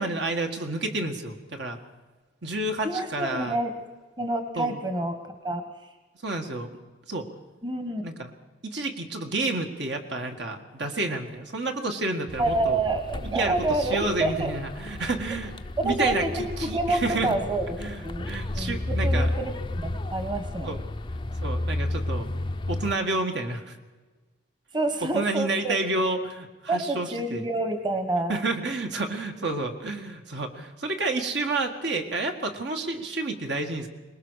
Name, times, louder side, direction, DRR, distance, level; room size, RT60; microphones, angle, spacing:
voice 1, 0.0-1.8 2.4-3.6 4.6-4.8 6.2-6.7 7.1-7.3 8.0-8.3 8.6-12.8 13.2-15.5 15.8-17.3 17.8-19.3 20.6-20.8 21.4-22.3 22.7-23.8 25.0-27.5 28.3-33.9, right 2 dB, 60° right, 4 dB, 1.9 m, -30 dB
voice 2, 2.8-3.7 4.2-5.6 7.6-8.0 12.4-14.5 15.8-18.3 18.5-20.7 24.7-25.7 26.7-28.3, right 2 dB, 25° right, 7 dB, 1.5 m, -28 dB
sound 1, 12.3-22.9, left 1 dB, 25° left, 0.6 m, -32 dB
23.5 x 20.0 x 6.5 m, 1.3 s
head